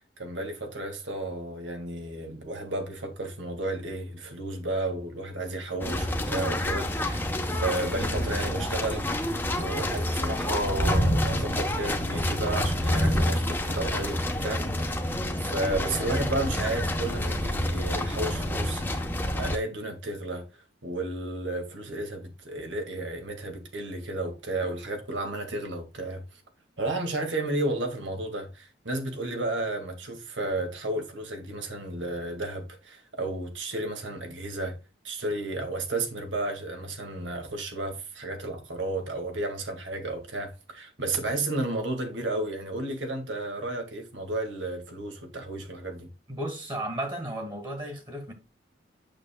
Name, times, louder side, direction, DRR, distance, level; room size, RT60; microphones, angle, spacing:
voice 1, 0.2-9.1 9.5-26.4 26.8-34.8 35.0-46.1, right 2 dB, 85° right, 1.9 m, -33 dB
sound 1, 5.8-19.6, left 1 dB, 10° left, 0.8 m, -28 dB
voice 2, 46.3-48.3, right 1 dB, 25° right, 1.7 m, -34 dB
8.8 x 6.6 x 2.2 m
head